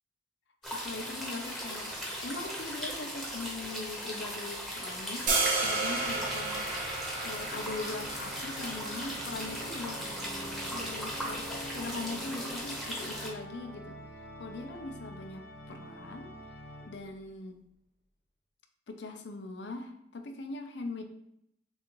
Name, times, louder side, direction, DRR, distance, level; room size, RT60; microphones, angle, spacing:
sound 1, 0.6-13.3, equal, ahead, 0.9 m, -38 dB
voice 1, 0.7-1.9 2.2-5.3 5.6-10.1 10.7-14.0 14.4-16.3 16.9-17.6 18.9-21.0, left 3 dB, 80° left, 6 dB, 0.6 m, -41 dB
sound 2, 5.3-11.4, right 3 dB, 45° right, 1.1 m, -34 dB
Organ, 5.4-17.3, equal, 60° left, 1.0 m, -46 dB
6.1 x 2.5 x 3.0 m, 0.77 s
head